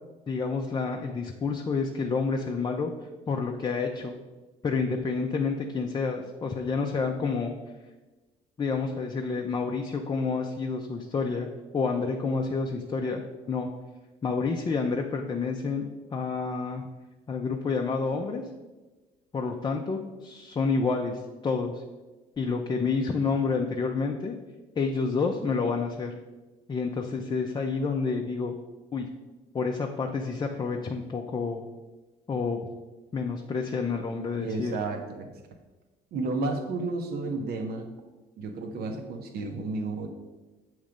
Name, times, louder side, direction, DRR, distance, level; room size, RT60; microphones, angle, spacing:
voice 1, 0.3-2.9 3.3-4.2 4.6-7.6 8.6-11.5 11.7-13.2 13.5-13.7 14.2-16.8 17.3-18.4 19.3-21.8 22.4-24.3 24.8-26.1 26.7-28.5 28.9-29.1 29.5-31.6 32.3-32.6 33.1-34.7, left 4 dB, 25° left, 2 dB, 0.5 m, -29 dB
voice 2, 34.4-35.3 36.1-37.9 38.4-40.1, right 3 dB, 65° right, 3 dB, 1.0 m, -32 dB
7.3 x 3.2 x 5.1 m, 1.2 s
cardioid pair, 110°, 17 cm